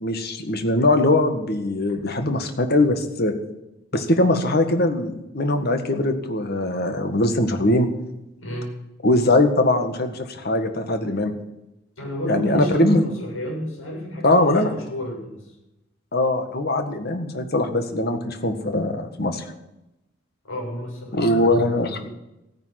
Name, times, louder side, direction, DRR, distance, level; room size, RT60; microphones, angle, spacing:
voice 1, 0.0-3.3 3.9-7.9 9.0-11.3 12.2-13.0 14.2-14.7 16.1-19.5 21.1-22.0, left 1 dB, 50° left, 7 dB, 1.7 m, -21 dB
voice 2, 8.4-8.7 12.0-15.5 20.4-22.0, equal, 85° left, -1 dB, 6.9 m, -30 dB
15.5 x 9.9 x 6.0 m, 0.91 s
head